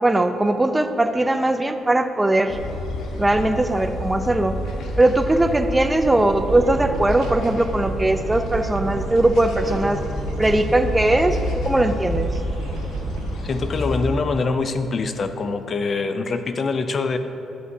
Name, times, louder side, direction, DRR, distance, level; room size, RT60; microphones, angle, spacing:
voice 1, 0.0-2.6 3.2-4.6 5.0-10.0 10.4-12.3, right 1 dB, 15° right, 8 dB, 0.5 m, -20 dB
sound 1, 2.5-14.1, left 1 dB, 80° left, 1.1 m, -29 dB
sound 2, 5.9-14.2, right 6 dB, 80° right, 0.4 m, -35 dB
Piano, 6.7-13.5, equal, 20° left, 1.3 m, -39 dB
voice 2, 13.4-17.2, left 4 dB, 45° left, 9 dB, 0.5 m, -24 dB
11.0 x 7.7 x 2.7 m, 2.9 s
cardioid pair, 90°, 0 cm